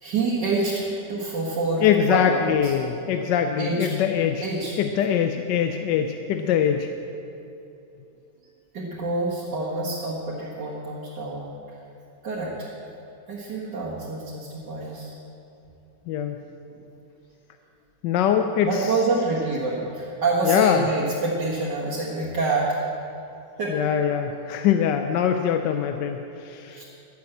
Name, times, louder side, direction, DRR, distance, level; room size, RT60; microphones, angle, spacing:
voice 1, 0.0-2.7 3.6-3.9 4.4-4.8 8.7-11.5 12.2-12.7 13.3-15.2 16.7-16.8 18.6-22.7 23.6-23.9 26.7-26.8, right 3 dB, 75° right, -6 dB, 2.2 m, -27 dB
voice 2, 1.8-4.5 4.8-6.9 16.1-16.4 18.0-18.9 20.4-20.8 23.7-26.8, left 8 dB, 85° left, 6 dB, 1.3 m, -23 dB
11.5 x 10.5 x 7.8 m, 2.8 s
omnidirectional pair, 1.9 m